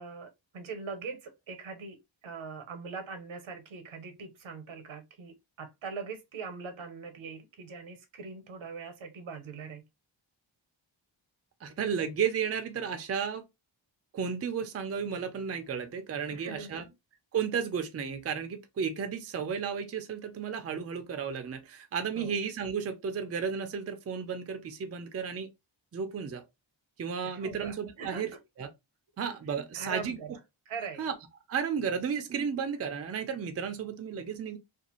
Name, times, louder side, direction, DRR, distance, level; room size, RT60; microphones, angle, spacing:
voice 1, 0.0-9.8 16.3-16.9 22.1-22.3 27.2-28.4 29.7-30.4 30.7-31.1, right 5 dB, 85° right, 0.8 m, -42 dB
voice 2, 11.6-13.4 14.1-16.9 17.3-25.5 25.9-26.4 27.0-28.3 28.6-28.7 29.2-30.2 31.0-31.1 31.5-34.6, right 6 dB, 35° right, 0.4 m, -33 dB
2.5 x 2.3 x 2.9 m
wide cardioid pair, 170°, 46 cm